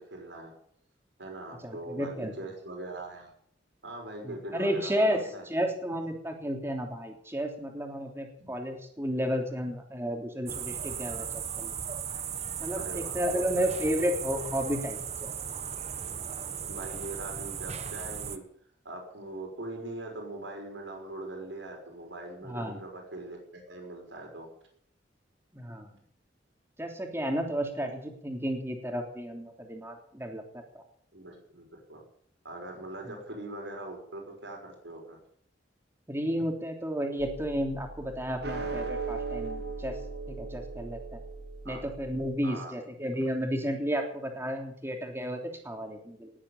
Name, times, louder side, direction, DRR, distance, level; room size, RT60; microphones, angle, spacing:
voice 1, 0.1-0.5 1.2-2.1 2.4-3.3 3.8-5.4 8.4-8.5 12.8-13.7 16.7-18.4 18.8-24.5 31.1-32.0 32.4-35.2 41.6-41.8 42.4-42.7, right 2 dB, 85° right, 2 dB, 6.0 m, -41 dB
voice 2, 1.6-2.3 4.2-11.7 12.6-15.3 22.4-22.8 25.5-25.9 26.8-30.8 33.0-33.2 36.1-40.0 40.3-41.2 41.6-46.3, equal, 15° right, 2 dB, 3.3 m, -32 dB
sound 1, 10.5-18.4, right 8 dB, 35° right, 1.1 m, -36 dB
sound 2, 37.2-42.3, right 4 dB, 65° right, 2.4 m, -38 dB
19.0 x 8.7 x 8.7 m, 0.64 s
head